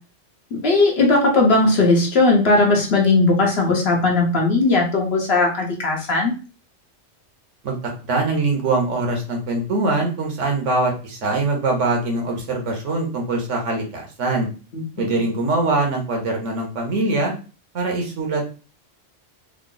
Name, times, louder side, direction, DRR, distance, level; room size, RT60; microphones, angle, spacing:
voice 1, 0.5-6.3 14.7-14.8, left 3 dB, 60° left, 0 dB, 1.0 m, -17 dB
voice 2, 7.6-14.5 15.0-17.3 17.7-18.5, right 2 dB, 80° right, 1 dB, 1.3 m, -23 dB
3.8 x 2.0 x 3.7 m, 0.35 s
omnidirectional pair, 1.2 m